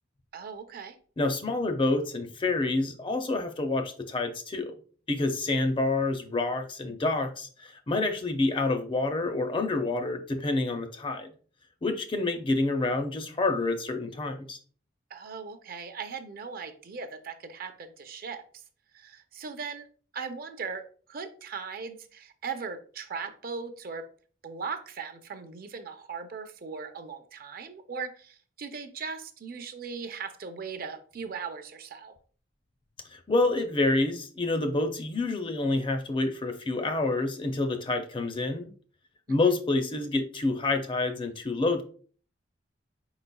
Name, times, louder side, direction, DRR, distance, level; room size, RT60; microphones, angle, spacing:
voice 1, 0.3-1.0 15.1-18.6 18.9-19.9 20.1-24.0 24.4-32.1 39.3-39.5, right 5 dB, 50° right, 8 dB, 0.5 m, -39 dB
voice 2, 1.2-4.7 5.1-11.3 11.8-14.6 33.1-38.7 39.3-41.8, left 2 dB, 25° left, 6 dB, 0.4 m, -28 dB
4.5 x 3.9 x 2.2 m, 0.43 s
head